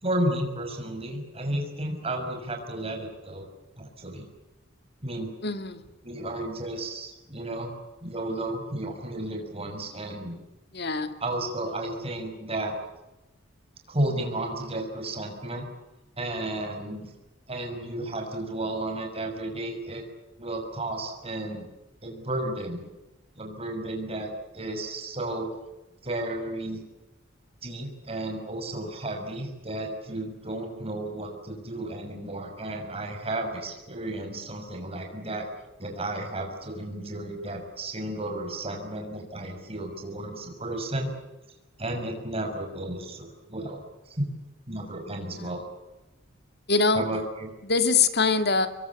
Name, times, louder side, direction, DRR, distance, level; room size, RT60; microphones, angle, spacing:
voice 1, 0.0-3.5 3.8-4.3 5.0-5.3 6.0-7.7 8.0-10.3 11.2-12.8 13.9-15.7 16.2-17.1 17.5-20.0 20.4-21.7 22.0-22.8 23.4-25.5 26.0-26.8 27.6-35.5 35.8-41.1 41.8-43.8 44.1-44.3 44.7-45.6 46.9-47.5, right 1 dB, 30° right, 3 dB, 6.1 m, -33 dB
voice 2, 5.4-5.8 10.7-11.1 46.7-47.0 47.6-48.7, left 4 dB, 55° left, 9 dB, 2.3 m, -23 dB
26.5 x 23.0 x 8.5 m, 1.0 s
head